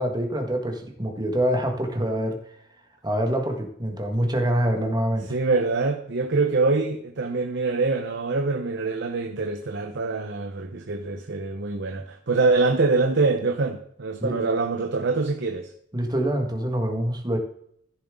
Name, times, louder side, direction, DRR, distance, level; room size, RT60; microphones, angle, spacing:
voice 1, 0.0-2.4 3.0-5.3 14.2-14.3 15.9-17.4, equal, 20° right, 1.6 m, -25 dB
voice 2, 5.3-15.7, right 3 dB, 60° right, 0.9 m, -24 dB
14.5 x 7.2 x 3.8 m
head